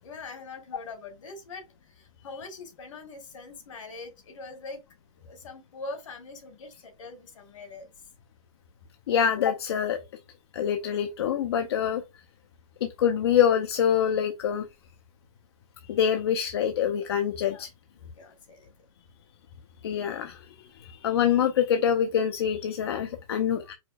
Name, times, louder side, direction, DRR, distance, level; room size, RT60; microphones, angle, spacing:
voice 1, 0.0-4.8 5.2-7.9 17.4-17.7 17.9-18.7, left 3 dB, 65° left, 1.7 m, -43 dB
voice 2, 9.1-10.0 10.5-12.0 12.8-14.7 15.8-17.7 19.8-23.7, left 9 dB, 45° left, 0.6 m, -25 dB
4.9 x 4.2 x 2.3 m
hypercardioid pair, 175°, 18 cm